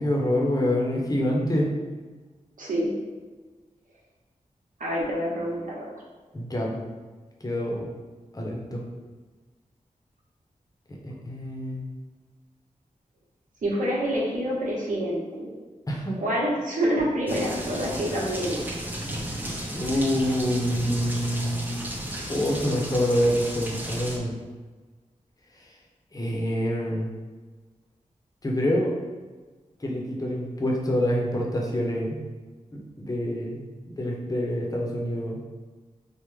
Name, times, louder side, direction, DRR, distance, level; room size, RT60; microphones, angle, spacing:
voice 1, 0.0-1.7 6.3-6.9 7.4-7.9 8.3-8.8 10.9-11.8 15.9-16.2 19.7-21.8 22.3-24.3 25.6-25.7 26.1-27.1 28.4-28.9 29.8-32.2 32.7-33.6 33.9-35.4, equal, 25° left, -2 dB, 0.7 m, -26 dB
voice 2, 2.6-2.9 4.8-5.8 13.6-15.5 16.2-18.6, equal, 75° right, -5 dB, 0.9 m, -27 dB
sound 1, 17.3-24.2, right 1 dB, 15° right, 0.5 m, -34 dB
3.5 x 2.1 x 3.2 m, 1.3 s
cardioid pair, 60°, 14 cm